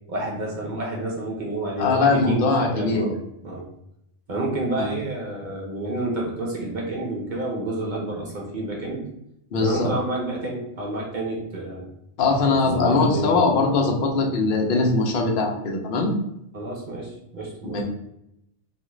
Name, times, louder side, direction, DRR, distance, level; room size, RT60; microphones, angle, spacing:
voice 1, 0.1-3.2 3.4-3.7 4.3-9.1 9.6-11.9 12.5-13.7 16.5-17.8, right 2 dB, 50° right, -2 dB, 0.6 m, -29 dB
voice 2, 1.8-3.1 4.8-4.9 9.5-9.9 12.2-16.1 17.6-17.8, left 3 dB, 55° left, 1 dB, 0.7 m, -21 dB
2.4 x 2.4 x 3.0 m, 0.80 s
omnidirectional pair, 1.3 m